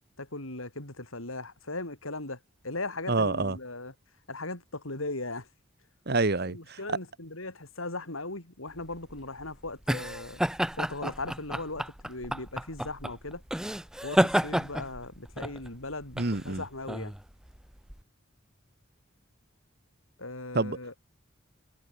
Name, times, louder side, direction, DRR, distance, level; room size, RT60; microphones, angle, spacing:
voice 1, 0.2-3.9 4.3-5.5 6.5-10.4 10.7-13.4 14.0-17.1 20.2-21.0, left 2 dB, 85° left, 6.0 m, -38 dB
voice 2, 3.1-3.6 6.1-6.6 16.2-16.6 20.5-20.9, right 3 dB, 50° right, 1.4 m, -27 dB
sound 1, 8.8-18.0, equal, 5° right, 0.4 m, -31 dB
head